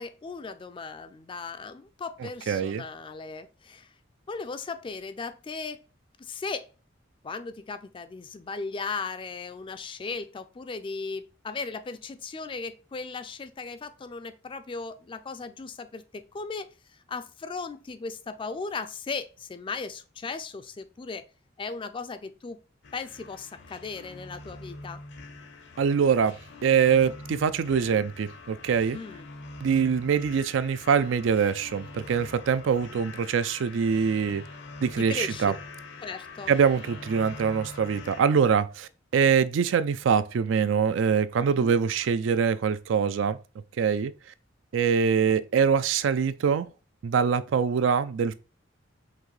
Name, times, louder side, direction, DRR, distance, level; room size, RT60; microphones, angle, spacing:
voice 1, 0.0-3.9 4.3-5.8 6.2-6.7 7.2-16.7 17.1-21.2 21.6-22.6 22.9-25.0 28.9-29.3 35.0-35.5 36.0-36.5 41.4-41.7, left 4 dB, 25° left, 0.4 m, -37 dB
voice 2, 2.2-2.8 25.8-26.3 26.6-29.0 29.6-34.4 34.8-35.5 36.5-43.4 43.8-44.1 44.7-46.7 47.0-48.3, right 6 dB, 70° right, 0.4 m, -24 dB
sound 1, 22.8-38.2, left 3 dB, 65° left, 0.7 m, -44 dB
5.8 x 2.6 x 3.2 m
head